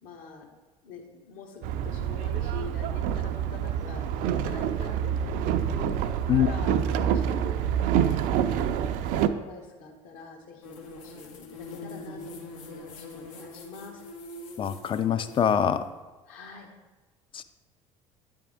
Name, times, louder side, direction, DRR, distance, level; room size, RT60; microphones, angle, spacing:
voice 1, 0.0-0.5 0.8-14.0 16.3-16.7, left 4 dB, 55° left, 2 dB, 1.2 m, -44 dB
Boat Water vehicle, 1.6-9.3, right 9 dB, 55° right, 0.4 m, -27 dB
sound 1, 10.6-15.8, left 2 dB, 70° left, 1.0 m, -43 dB
voice 2, 14.6-15.8 17.3-17.4, left 9 dB, 30° left, 11 dB, 0.4 m, -24 dB
9.7 x 3.5 x 3.5 m, 1.2 s
figure-of-eight pair, 60°, 17 cm